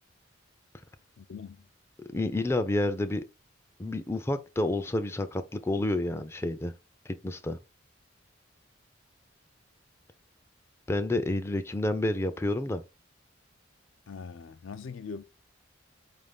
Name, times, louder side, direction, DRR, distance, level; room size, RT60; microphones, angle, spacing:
voice 1, 1.2-1.7 14.1-15.2, left 5 dB, 80° left, 0.4 m, -41 dB
voice 2, 2.1-3.2 3.8-6.7 7.1-7.6 10.9-12.8, left 1 dB, 15° left, 0.3 m, -29 dB
5.1 x 2.6 x 3.4 m
head